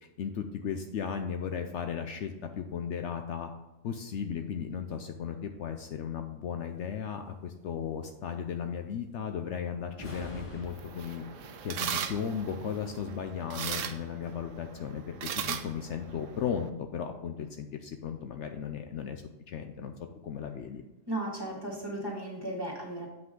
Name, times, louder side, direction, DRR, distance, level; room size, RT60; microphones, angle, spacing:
voice 1, 0.2-3.5 3.8-11.2 11.6-19.9 20.2-20.8, left 7 dB, 70° left, 6 dB, 0.9 m, -36 dB
sound 1, 9.9-13.2, left 1 dB, 20° left, 2.2 m, -46 dB
sound 2, 10.6-16.7, right 9 dB, 75° right, 0.9 m, -39 dB
voice 2, 21.1-23.1, right 1 dB, 20° right, -3 dB, 2.1 m, -35 dB
7.8 x 5.8 x 3.8 m, 1.0 s
omnidirectional pair, 1.4 m